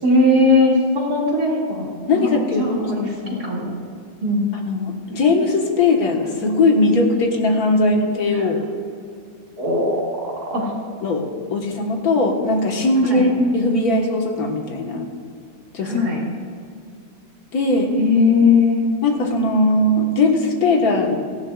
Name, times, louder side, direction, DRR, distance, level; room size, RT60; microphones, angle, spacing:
voice 1, 0.0-2.3 2.6-3.7 4.2-4.5 8.3-8.5 9.6-10.7 13.1-13.3 15.8-16.2 18.0-18.8, left 3 dB, 55° right, -4 dB, 2.9 m, -19 dB
voice 2, 2.1-3.5 4.7-8.6 11.0-15.1 15.7-16.0 17.5-17.9 19.0-21.1, left 2 dB, 55° left, 1 dB, 1.8 m, -19 dB
17.5 x 14.5 x 2.4 m, 2.3 s
omnidirectional pair, 2.1 m